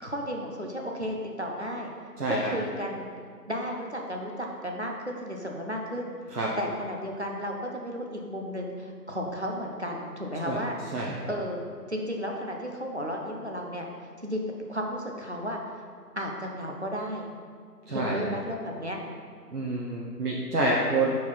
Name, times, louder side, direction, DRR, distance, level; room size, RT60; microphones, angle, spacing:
voice 1, 0.0-1.9 2.2-3.1 3.5-10.8 11.3-11.6 11.9-13.9 14.2-14.4 14.7-15.6 16.2-17.2 17.9-19.0, equal, 45° right, 0 dB, 0.6 m, -33 dB
voice 2, 2.2-2.5 6.3-6.5 10.4-10.6 10.9-11.2 17.9-18.3 19.5-21.2, right 2 dB, 65° right, -4 dB, 0.9 m, -27 dB
5.5 x 4.7 x 4.4 m, 2.1 s
figure-of-eight pair, 175°, 49 cm